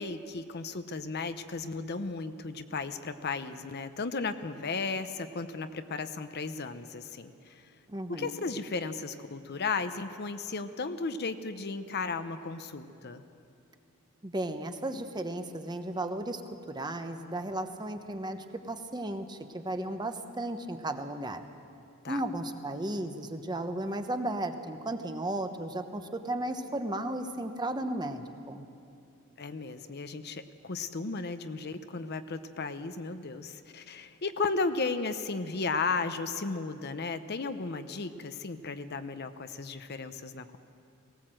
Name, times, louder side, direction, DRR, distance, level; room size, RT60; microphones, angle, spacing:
voice 1, 0.0-7.5 8.1-13.2 22.0-22.2 29.4-40.6, left 4 dB, 50° left, 10 dB, 0.8 m, -35 dB
voice 2, 7.9-8.3 14.2-16.4 16.7-21.5 22.1-28.6, right 1 dB, 20° right, 7 dB, 0.9 m, -35 dB
19.0 x 18.5 x 7.7 m, 2.6 s
head